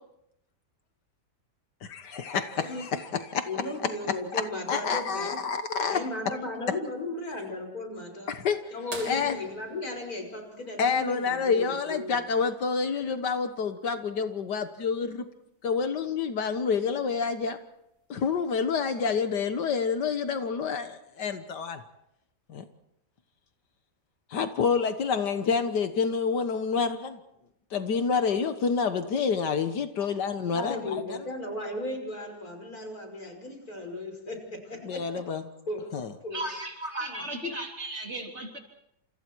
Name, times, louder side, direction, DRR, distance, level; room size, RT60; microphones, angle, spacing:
voice 1, 1.8-3.5 4.3-4.4 4.7-6.0 8.3-8.6 9.1-9.4 10.8-15.3 15.6-17.6 18.1-21.8 22.5-22.6 24.3-27.2 27.7-31.2 34.8-35.4 35.9-36.1, left 5 dB, 80° left, 8 dB, 1.9 m, -28 dB
voice 2, 3.5-5.4 5.9-8.4 8.7-12.2 30.0-30.1 30.5-35.0 35.7-35.8 36.2-36.4 37.0-37.2, left 2 dB, 60° left, 3 dB, 6.0 m, -36 dB
sound 1, 8.9-11.4 13.3-13.4 15.6-15.7 17.4-17.7 18.5-18.6, right 2 dB, 80° right, 4.9 m, -44 dB
voice 3, 36.3-38.6, right 1 dB, 40° right, 2 dB, 3.7 m, -35 dB
30.0 x 28.0 x 4.7 m, 0.82 s
omnidirectional pair, 1.8 m